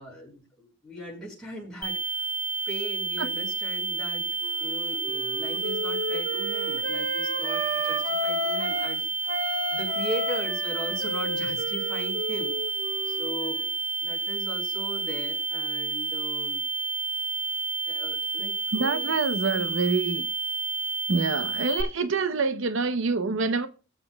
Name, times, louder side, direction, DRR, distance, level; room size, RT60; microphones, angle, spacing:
voice 1, 0.0-2.2 2.7-4.3 4.6-9.0 9.7-12.5 13.0-13.8 14.0-16.6 17.9-19.7, equal, ahead, 5.2 m, -39 dB
sound 1, 1.8-21.8, right 4 dB, 50° left, 3.2 m, -30 dB
Wind instrument woodwind instrument, 4.4-8.9 9.2-13.7, equal, 45° right, 4.3 m, -33 dB
voice 2, 18.7-20.3 21.1-23.7, right 4 dB, 65° right, 0.7 m, -26 dB
21.5 x 7.6 x 2.3 m
head